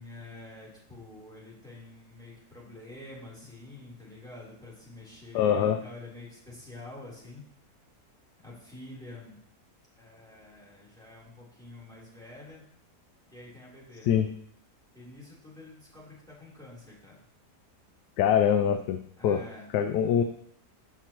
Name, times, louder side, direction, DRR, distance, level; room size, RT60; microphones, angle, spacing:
voice 1, 0.0-7.4 8.4-9.4 10.0-12.6 13.3-14.1 14.9-17.2 19.2-19.7, left 2 dB, ahead, -6 dB, 3.4 m, -47 dB
voice 2, 5.3-5.8 14.1-14.3 18.2-19.0 19.2-19.4 19.7-20.2, left 9 dB, 90° left, 8 dB, 1.2 m, -23 dB
16.5 x 5.9 x 2.9 m, 0.69 s
omnidirectional pair, 1.8 m